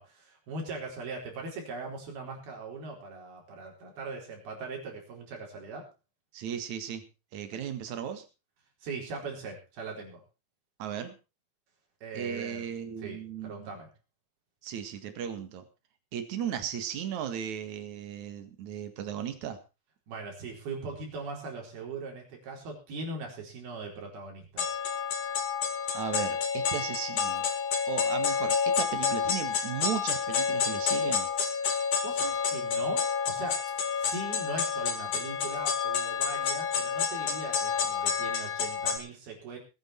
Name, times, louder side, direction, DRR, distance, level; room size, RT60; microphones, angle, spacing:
voice 1, 0.0-5.9 8.8-10.2 12.0-12.7 13.0-13.9 20.1-24.7 31.7-31.8 32.0-33.6 33.9-39.6, right 3 dB, 80° right, 0 dB, 6.3 m, -40 dB
voice 2, 6.3-7.0 7.3-8.2 10.8-11.1 12.1-13.8 14.6-15.7 16.1-19.6 25.9-27.5 27.9-31.3, right 9 dB, 55° right, 9 dB, 2.8 m, -36 dB
sound 1, 24.6-39.0, left 6 dB, 60° left, 3.4 m, -29 dB
21.0 x 9.3 x 4.4 m, 0.30 s
omnidirectional pair, 4.3 m